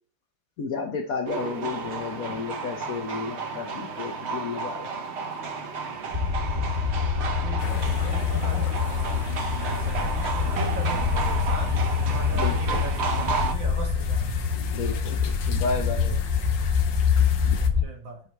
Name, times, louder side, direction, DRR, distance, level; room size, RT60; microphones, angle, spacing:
voice 1, 0.6-5.0 12.3-12.8 14.7-16.2 17.4-17.6, left 5 dB, 55° left, 5 dB, 1.1 m, -32 dB
sound 1, 1.3-13.5, right 4 dB, 50° right, 0.9 m, -32 dB
sound 2, 6.1-17.8, left 6 dB, 25° right, 1.7 m, -25 dB
voice 2, 7.2-11.8 12.1-14.6 17.8-18.2, right 3 dB, 75° right, 1 dB, 2.5 m, -39 dB
sound 3, 7.6-17.7, left 7 dB, 70° left, 1.4 m, -42 dB
7.2 x 4.9 x 4.5 m, 0.43 s
omnidirectional pair, 2.1 m